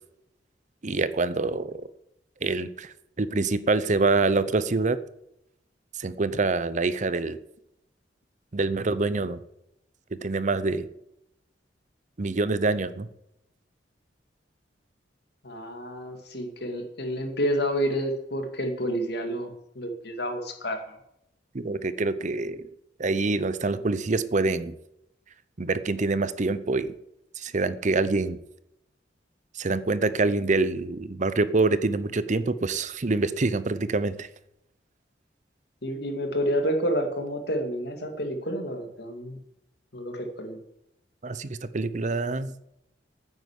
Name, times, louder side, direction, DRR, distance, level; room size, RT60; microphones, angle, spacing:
voice 1, 0.8-1.8 2.4-5.0 6.0-7.4 8.5-9.4 10.2-10.9 12.2-13.1 21.5-22.7 23.0-24.7 25.6-26.9 27.4-28.4 29.5-34.3 41.2-42.5, right 3 dB, 40° right, 14 dB, 0.7 m, -26 dB
voice 2, 15.4-21.0 35.8-39.4 39.9-40.6, equal, 60° left, 5 dB, 2.3 m, -29 dB
9.6 x 9.3 x 8.2 m, 0.82 s
head